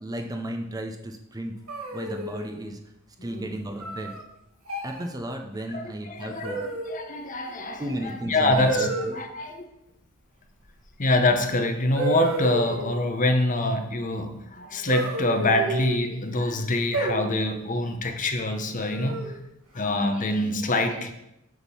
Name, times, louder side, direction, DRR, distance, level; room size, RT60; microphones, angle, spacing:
voice 1, 0.0-1.5 1.9-2.8 3.2-4.1 4.8-6.6 7.8-9.2, right 1 dB, 15° right, 4 dB, 0.5 m, -34 dB
sound 1, 1.7-2.5 3.8-4.2 4.7-5.0 6.4-7.1 8.5-9.1 11.1-11.2 11.9-12.9 14.9-16.0 16.9-17.6 18.8-19.4, right 2 dB, 70° right, 1.9 m, -30 dB
voice 2, 3.2-3.5 5.7-9.7 11.0-19.3 19.7-21.1, left 2 dB, 40° left, 6 dB, 0.8 m, -25 dB
8.1 x 3.6 x 6.1 m, 0.85 s
head